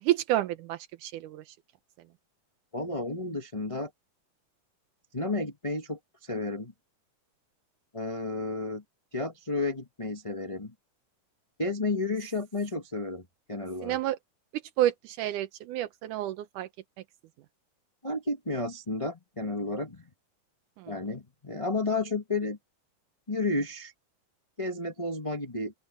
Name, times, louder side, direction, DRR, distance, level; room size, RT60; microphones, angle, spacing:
voice 1, 0.0-1.6 13.8-14.2 14.8-16.7 20.8-21.0, right 14 dB, 85° right, 2.4 m, -29 dB
voice 2, 2.7-3.9 5.1-6.7 7.9-8.8 9.1-10.7 11.6-14.0 18.0-20.0 20.9-22.6 23.3-23.9 24.6-25.7, left 2 dB, 20° left, 0.8 m, -32 dB
open air
omnidirectional pair, 3.6 m